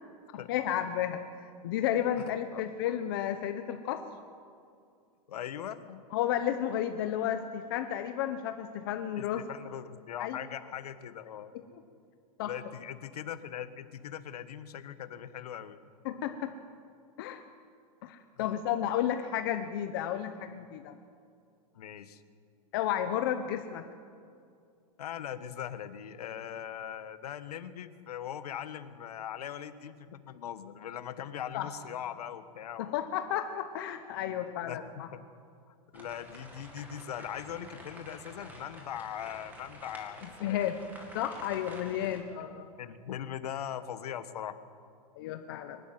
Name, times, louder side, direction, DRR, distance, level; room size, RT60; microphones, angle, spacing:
voice 1, 0.5-4.0 6.1-9.4 10.2-10.4 12.4-12.5 16.0-16.5 17.2-17.4 18.0-21.0 22.7-23.8 31.5-31.7 32.8-35.1 40.4-40.7 41.1-42.7 45.2-45.8, left 10 dB, 35° left, 7 dB, 0.8 m, -32 dB
voice 2, 5.3-6.0 9.2-11.5 12.4-15.8 18.4-18.5 21.7-22.2 25.0-33.0 34.6-35.2 35.7-40.6 42.0-42.4 42.8-44.6, left 9 dB, 70° left, 11 dB, 1.4 m, -40 dB
sound 1, 35.9-42.2, equal, 10° right, 2.1 m, -49 dB
23.5 x 12.0 x 9.1 m, 2.4 s
supercardioid pair, 175°, 20 cm